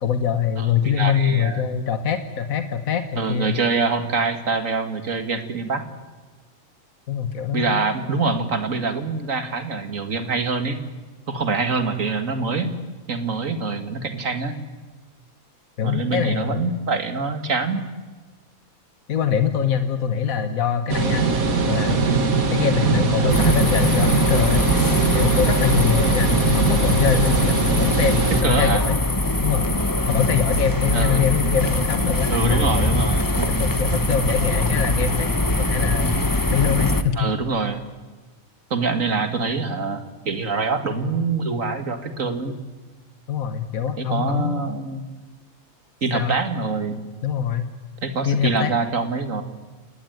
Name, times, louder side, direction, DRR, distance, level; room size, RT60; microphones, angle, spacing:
voice 1, 0.0-3.6 7.1-7.9 15.8-16.7 19.1-21.2 21.6-22.1 22.5-24.6 25.1-29.0 29.4-29.7 30.1-33.1 33.6-36.1 36.5-37.3 43.3-44.6 46.1-46.4 47.2-47.7 48.2-48.7, left 8 dB, 75° left, 9 dB, 1.8 m, -23 dB
voice 2, 0.6-1.6 3.2-5.8 7.5-10.8 11.3-12.8 13.1-14.5 15.8-17.8 28.3-28.8 30.9-31.3 32.3-33.6 37.2-37.9 38.7-40.0 40.3-42.6 44.0-45.0 46.0-47.1 48.0-49.4, right 4 dB, 70° right, 8 dB, 2.5 m, -25 dB
sound 1, 20.9-28.4, right 4 dB, 85° right, 2.5 m, -21 dB
sound 2, 23.3-37.0, left 2 dB, 15° left, 1.2 m, -22 dB
29.5 x 18.0 x 9.5 m, 1.3 s
omnidirectional pair, 1.4 m